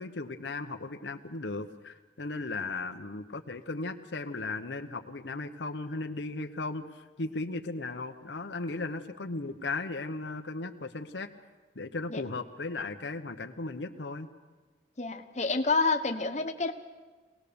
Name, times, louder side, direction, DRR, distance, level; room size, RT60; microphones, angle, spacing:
voice 1, 0.0-11.3 11.7-14.3, left 3 dB, 90° left, 6 dB, 1.0 m, -36 dB
voice 2, 15.0-16.7, left 3 dB, 40° left, 5 dB, 1.2 m, -28 dB
23.5 x 18.0 x 6.9 m, 1.3 s
head